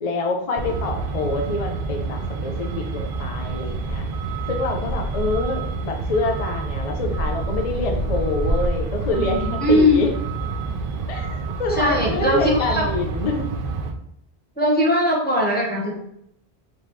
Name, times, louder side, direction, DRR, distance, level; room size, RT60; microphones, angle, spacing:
voice 1, 0.0-4.1 4.5-10.1 11.1-13.5, left 3 dB, 45° left, 3 dB, 0.6 m, -26 dB
Truck, 0.6-13.9, right 3 dB, 65° right, 0.7 m, -27 dB
voice 2, 9.6-10.0 11.8-12.8 14.6-15.9, left 1 dB, 10° left, -3 dB, 0.9 m, -19 dB
4.9 x 3.6 x 3.0 m, 0.74 s
omnidirectional pair, 1.1 m